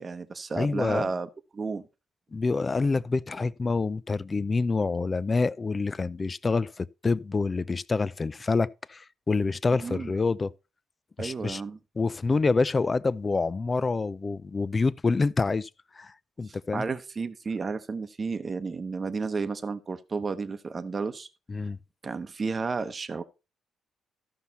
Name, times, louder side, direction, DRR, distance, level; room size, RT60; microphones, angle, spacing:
voice 1, 0.0-1.8 9.8-10.1 11.2-11.8 16.5-21.3 22.0-23.2, right 4 dB, 35° right, 0.9 m, -32 dB
voice 2, 0.6-1.1 2.3-10.5 11.2-11.6 12.0-15.7 16.0-16.1 16.4-16.9 21.5-21.8, left 4 dB, 30° left, 0.5 m, -27 dB
13.0 x 5.7 x 4.1 m
cardioid pair, 80°, 0 cm